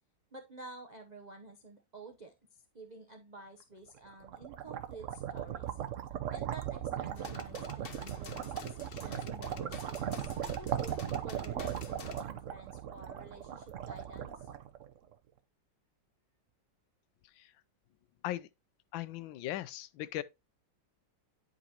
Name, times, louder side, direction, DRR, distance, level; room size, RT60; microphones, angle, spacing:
voice 1, 0.3-5.8 6.3-14.5, right 3 dB, 80° right, 0.3 m, -51 dB
sound 1, 4.0-15.1, right 10 dB, 65° right, 0.7 m, -38 dB
sound 2, 7.2-12.2, left 6 dB, 50° left, 0.7 m, -49 dB
voice 2, 18.9-20.2, left 14 dB, 85° left, 1.3 m, -38 dB
9.9 x 5.1 x 2.8 m
omnidirectional pair, 2.1 m